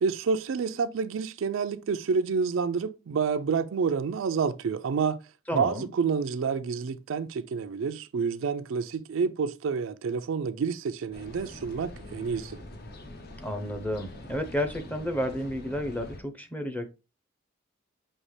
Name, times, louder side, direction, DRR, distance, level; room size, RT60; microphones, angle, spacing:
voice 1, 0.0-5.2 5.5-12.6, right 5 dB, 75° right, 0.4 m, -28 dB
voice 2, 5.5-5.9 13.4-16.9, equal, 10° left, 0.6 m, -31 dB
sound 1, 11.1-16.2, left 1 dB, 50° left, 0.7 m, -44 dB
5.4 x 2.9 x 3.2 m
head